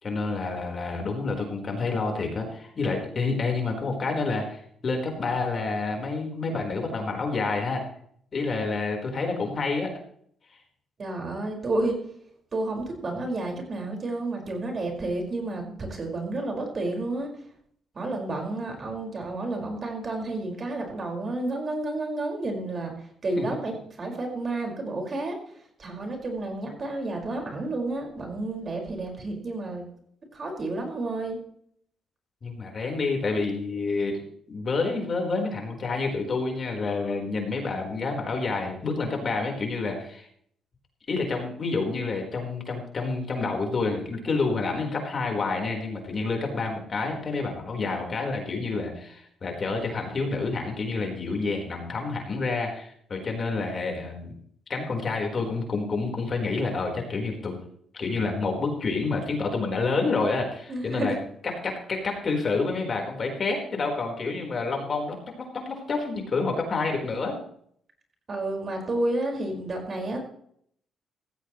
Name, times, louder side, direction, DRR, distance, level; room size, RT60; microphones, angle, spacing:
voice 1, 0.0-7.8 8.3-9.9 23.4-23.5 32.4-40.3 41.1-54.4 54.7-57.6 57.9-61.1 61.6-67.3, left 3 dB, 40° left, 2 dB, 4.4 m, -28 dB
voice 2, 11.0-12.0 12.5-17.3 17.9-29.9 30.3-31.4 60.7-61.2 68.3-70.2, right 2 dB, 40° right, 2 dB, 5.3 m, -31 dB
16.0 x 15.0 x 3.2 m, 0.65 s
cardioid pair, 90°, 0 cm